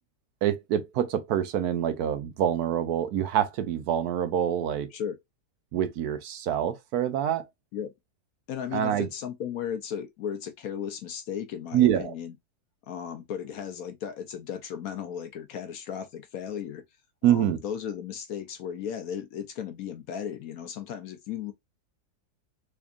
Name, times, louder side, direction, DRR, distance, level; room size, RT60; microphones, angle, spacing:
voice 1, 0.4-4.9 5.7-7.4 8.7-9.1 11.7-12.1 17.2-17.6, right 10 dB, 75° right, 1.1 m, -26 dB
voice 2, 8.5-12.3 12.9-16.8 17.3-21.5, left 8 dB, 65° left, 1.0 m, -35 dB
3.6 x 3.5 x 2.4 m
omnidirectional pair, 1.8 m